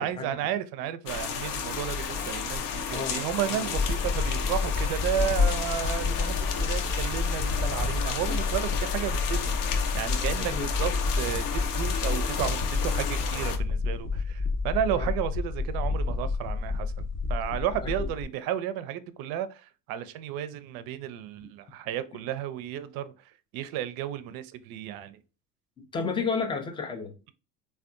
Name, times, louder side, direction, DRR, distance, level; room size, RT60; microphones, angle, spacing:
voice 1, 0.0-16.9 17.3-25.2, right 10 dB, 45° right, 0.5 m, -33 dB
sound 1, 1.1-13.6, left 6 dB, 65° left, 0.7 m, -32 dB
sound 2, 3.8-18.2, left 4 dB, 35° left, 0.7 m, -29 dB
voice 2, 25.9-27.1, left 5 dB, 10° left, 0.3 m, -31 dB
3.4 x 2.3 x 2.5 m
hypercardioid pair, 80°, 49 cm